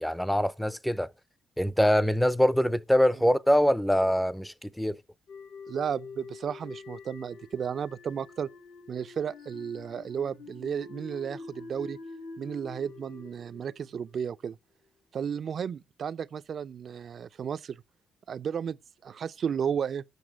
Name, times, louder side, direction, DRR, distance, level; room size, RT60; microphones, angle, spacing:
voice 1, 0.0-1.1 1.6-5.0, equal, 5° left, 0.5 m, -24 dB
sound 1, 5.3-14.5, left 4 dB, 85° left, 3.2 m, -46 dB
voice 2, 5.7-8.5 8.9-12.0 12.4-14.6 15.1-17.8 18.3-18.8 19.0-20.0, right 7 dB, 55° right, 0.4 m, -33 dB
8.0 x 6.6 x 6.3 m
cardioid pair, 90°, 0 cm